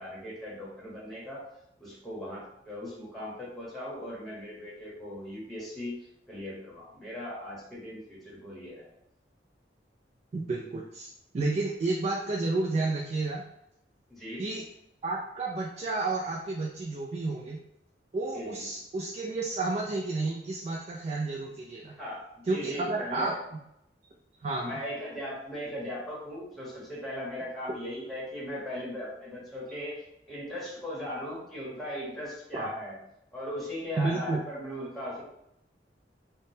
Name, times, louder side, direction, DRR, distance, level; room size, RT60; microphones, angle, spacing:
voice 1, 0.0-1.4 1.8-6.0 6.3-8.8 14.1-14.5 18.3-18.7 21.9-23.4 24.6-33.0 33.3-35.2, left 1 dB, ahead, -6 dB, 0.9 m, -38 dB
voice 2, 10.3-11.1 11.3-13.4 14.4-14.6 15.0-17.6 18.1-22.0 22.5-23.3 24.4-24.8 32.5-32.7 34.0-34.4, right 3 dB, 40° right, -3 dB, 0.3 m, -31 dB
3.5 x 2.1 x 2.7 m, 0.79 s
head